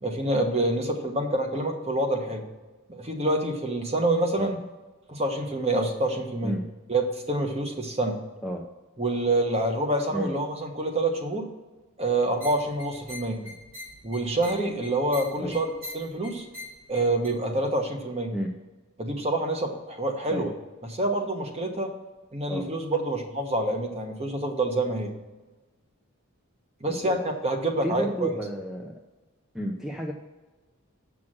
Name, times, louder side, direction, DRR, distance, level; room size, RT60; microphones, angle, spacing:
voice 1, 0.0-2.4 2.9-4.6 5.1-6.6 6.9-8.2 9.0-11.5 12.0-13.4 14.0-15.7 15.9-16.5 16.9-18.3 19.0-20.5 20.9-21.9 22.3-25.1 26.8-27.2 27.4-28.3, right 2 dB, 30° right, 3 dB, 1.1 m, -27 dB
sound 1, 12.3-17.3, left 1 dB, 65° right, 2.7 m, -44 dB
voice 2, 27.8-29.0 29.5-30.1, equal, ahead, 1 dB, 0.5 m, -32 dB
7.5 x 6.1 x 6.1 m, 1.2 s
head